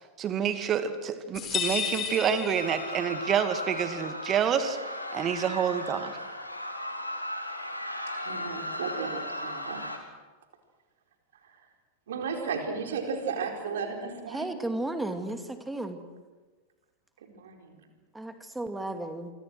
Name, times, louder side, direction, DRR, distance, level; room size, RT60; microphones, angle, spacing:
voice 1, 0.2-4.8 5.1-6.2, right 8 dB, 30° right, 9 dB, 2.3 m, -28 dB
sound 1, 1.4-3.3, left 7 dB, 30° left, 4.2 m, -32 dB
sound 2, 2.5-10.0, left 1 dB, 90° left, 3.2 m, -36 dB
voice 2, 8.2-9.8 11.4-11.6 12.1-14.6 17.3-17.9, right 5 dB, 60° right, 3 dB, 4.6 m, -34 dB
voice 3, 14.3-16.0 18.1-19.3, right 2 dB, 5° right, 7 dB, 2.5 m, -34 dB
28.0 x 25.0 x 6.4 m, 1.3 s
figure-of-eight pair, 90°, 0 cm